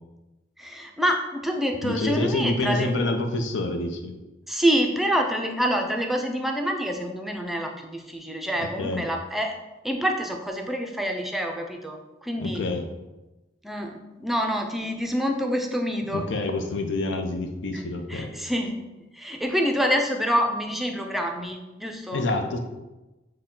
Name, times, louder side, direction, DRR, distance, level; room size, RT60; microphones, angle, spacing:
voice 1, 0.6-2.9 4.5-9.5 9.8-12.6 13.6-16.3 17.7-18.8 19.1-22.2, equal, ahead, 2 dB, 0.4 m, -27 dB
voice 2, 1.8-4.1 8.6-9.1 12.4-12.9 16.1-18.3 22.1-22.6, left 2 dB, 85° left, 5 dB, 0.6 m, -27 dB
6.5 x 2.2 x 3.7 m, 1.1 s
head